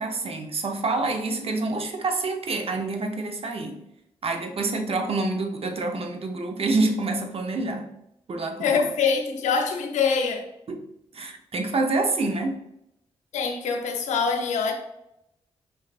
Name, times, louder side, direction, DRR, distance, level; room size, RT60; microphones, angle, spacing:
voice 1, 0.0-3.8 4.2-7.9 8.3-8.8 10.7-10.8 11.1-12.6, right 3 dB, 55° right, 0.7 m, -27 dB
voice 2, 8.6-10.5 13.3-14.7, left 5 dB, 85° left, 0.6 m, -24 dB
4.7 x 3.2 x 2.4 m
supercardioid pair, 45°, 12 cm